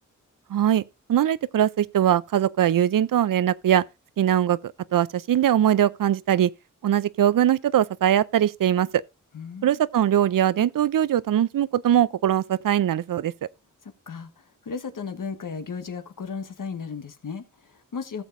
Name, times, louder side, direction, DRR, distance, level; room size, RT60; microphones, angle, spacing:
voice 1, 0.5-3.8 4.2-6.5 6.8-8.9 9.6-13.3, right 10 dB, 75° right, 0.5 m, -21 dB
voice 2, 9.3-9.8 13.8-18.2, left 5 dB, 70° left, 1.3 m, -35 dB
16.5 x 7.1 x 2.6 m
cardioid pair, 60°, 33 cm